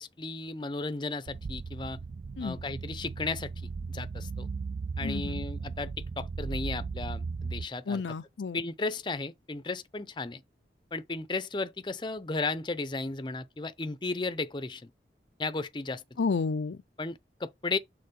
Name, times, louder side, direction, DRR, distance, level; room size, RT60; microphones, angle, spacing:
voice 1, 0.0-2.0 2.4-3.5 3.9-4.5 5.0-5.9 6.2-8.0 8.5-10.4 10.9-14.9 15.4-16.0 17.0-17.8, left 3 dB, 25° left, 0.6 m, -34 dB
sound 1, 1.3-7.7, right 4 dB, 45° right, 0.3 m, -37 dB
voice 2, 5.0-5.4 7.9-8.6 16.2-16.8, left 4 dB, 85° left, 0.5 m, -31 dB
6.7 x 3.6 x 5.2 m
head